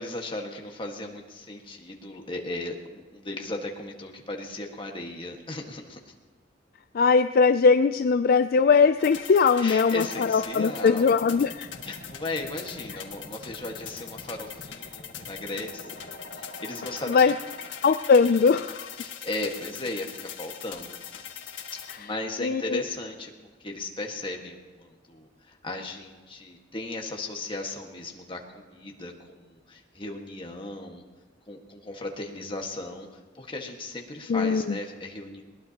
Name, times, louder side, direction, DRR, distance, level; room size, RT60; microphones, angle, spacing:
voice 1, 0.0-6.1 9.6-11.2 11.8-17.3 19.0-21.3 22.0-23.3 23.6-31.0 31.5-35.4, left 2 dB, 25° left, 2 dB, 1.7 m, -36 dB
voice 2, 6.9-11.7 17.1-17.3 17.8-18.9 22.4-22.8 34.3-34.7, left 5 dB, 55° left, 10 dB, 0.4 m, -20 dB
sound 1, 9.0-22.0, left 6 dB, 75° left, 1.7 m, -41 dB
21.0 x 19.5 x 2.9 m, 1.4 s
head